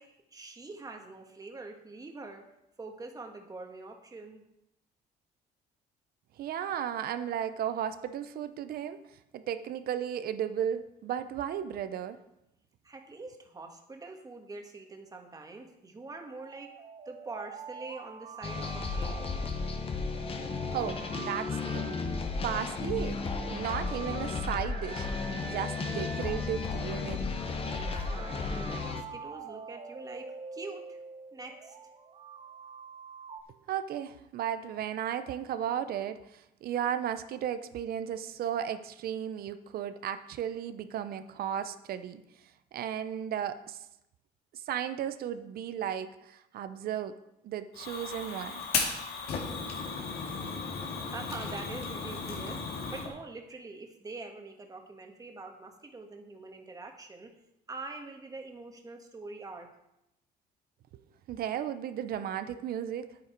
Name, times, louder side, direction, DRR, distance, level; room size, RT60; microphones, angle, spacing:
voice 1, 0.0-2.5 2.8-4.4 12.8-16.7 17.0-19.2 27.7-31.0 31.3-31.8 51.1-57.3 57.7-59.7, right 3 dB, 20° right, 3 dB, 1.7 m, -44 dB
voice 2, 6.4-9.0 9.3-12.2 20.7-22.0 22.4-23.2 23.5-25.1 25.3-27.3 33.7-42.2 42.7-43.8 44.5-47.1 47.4-48.6 61.3-63.1, right 9 dB, 65° right, 11 dB, 0.8 m, -34 dB
sound 1, 16.3-33.4, right 6 dB, 40° right, 1.1 m, -46 dB
sound 2, 18.4-29.0, left 4 dB, 35° left, 1.2 m, -34 dB
Fire, 47.7-53.1, left 4 dB, 70° left, 2.3 m, -35 dB
9.5 x 9.2 x 4.6 m, 0.85 s
cardioid pair, 110°, 17 cm